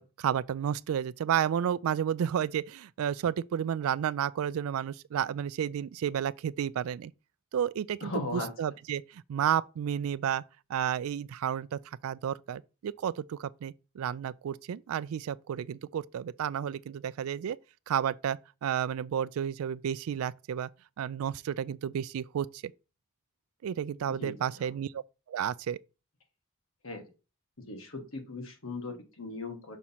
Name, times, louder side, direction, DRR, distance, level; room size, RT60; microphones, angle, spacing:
voice 1, 0.0-7.1 7.5-10.4 10.7-17.6 17.9-20.7 21.0-22.7 23.6-25.0 25.3-25.8, right 9 dB, 90° right, 0.3 m, -32 dB
voice 2, 8.0-8.5 24.2-24.7 26.8-27.0 27.7-29.8, left 2 dB, 75° left, 1.4 m, -38 dB
6.2 x 2.9 x 5.5 m
head